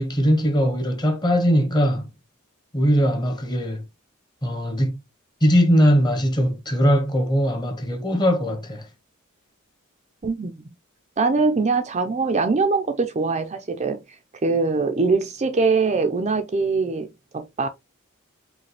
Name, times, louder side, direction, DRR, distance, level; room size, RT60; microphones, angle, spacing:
voice 1, 0.0-2.1 2.7-3.8 4.4-5.0 5.4-8.9, equal, 20° left, 1.0 m, -20 dB
voice 2, 10.2-10.5 11.2-14.0 14.4-17.1 17.3-17.7, right 4 dB, 30° right, 0.5 m, -22 dB
5.0 x 2.2 x 3.2 m
head